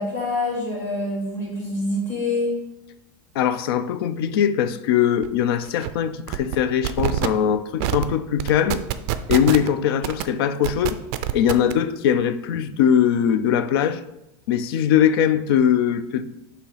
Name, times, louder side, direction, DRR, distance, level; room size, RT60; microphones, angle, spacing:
voice 1, 0.0-2.5, left 2 dB, 20° left, 2.3 m, -26 dB
voice 2, 3.3-8.8 9.3-11.0 11.3-14.0 14.5-16.2, left 9 dB, 75° left, 0.5 m, -21 dB
sound 1, 5.2-5.3 5.6-5.9 6.3-6.6 6.8-7.3 7.8-8.1 8.4-9.7 10.0-10.2 10.6-11.7, right 13 dB, 45° right, 0.4 m, -25 dB
7.0 x 2.8 x 5.6 m
supercardioid pair, 175°, 13 cm